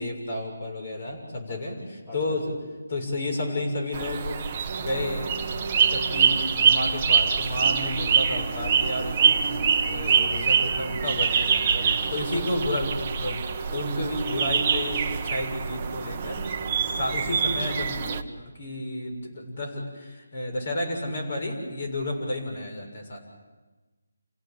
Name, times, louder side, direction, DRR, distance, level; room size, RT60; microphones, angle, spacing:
voice 1, 0.0-1.8 2.1-2.5 2.9-4.4 4.8-11.6 12.1-13.4 13.7-16.5 16.8-23.2, left 1 dB, 45° left, 2 dB, 6.9 m, -31 dB
voice 2, 1.5-1.8 2.1-2.4 11.7-12.6 16.5-17.0, left 1 dB, 20° left, -2 dB, 4.3 m, -44 dB
sound 1, 3.9-18.2, right 6 dB, 25° right, 1.3 m, -25 dB
29.5 x 16.5 x 8.6 m, 1.2 s
figure-of-eight pair, 165°, 0 cm